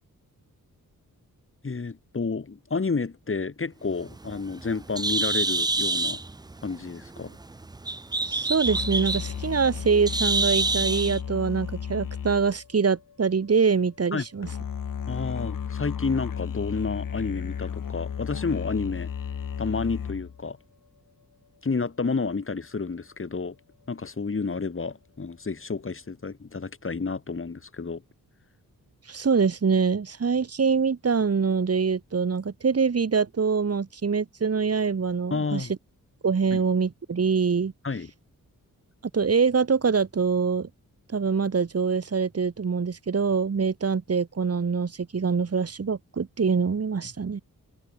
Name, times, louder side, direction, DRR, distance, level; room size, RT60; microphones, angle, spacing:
voice 1, 1.6-6.2 6.6-7.4 14.1-14.2 15.1-19.1 19.6-20.6 21.6-23.6 23.9-28.0 35.3-35.7 36.5-36.6 37.8-38.1, left 4 dB, 40° left, 6.7 m, -30 dB
Bird, 3.9-11.2, right 2 dB, 10° right, 0.5 m, -28 dB
voice 2, 8.3-14.5 29.1-35.7 36.2-37.7 39.1-40.7 41.1-47.4, right 5 dB, 45° right, 3.0 m, -24 dB
sound 1, 8.6-13.6 14.4-20.4, left 7 dB, 70° left, 5.6 m, -34 dB
wide cardioid pair, 115°, 34 cm